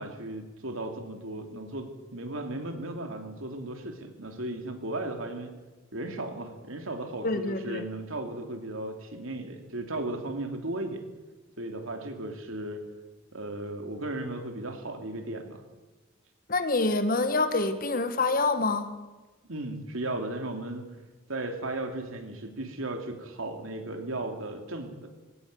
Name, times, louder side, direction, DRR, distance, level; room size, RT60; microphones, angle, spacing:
voice 1, 0.0-5.5 5.9-11.0 11.6-12.8 13.3-15.6 19.5-20.8 21.3-25.0, right 2 dB, 80° right, 5 dB, 2.9 m, -36 dB
voice 2, 7.2-7.8 16.5-18.9, left 3 dB, 45° left, 9 dB, 1.5 m, -26 dB
20.5 x 17.0 x 7.8 m, 1.2 s
head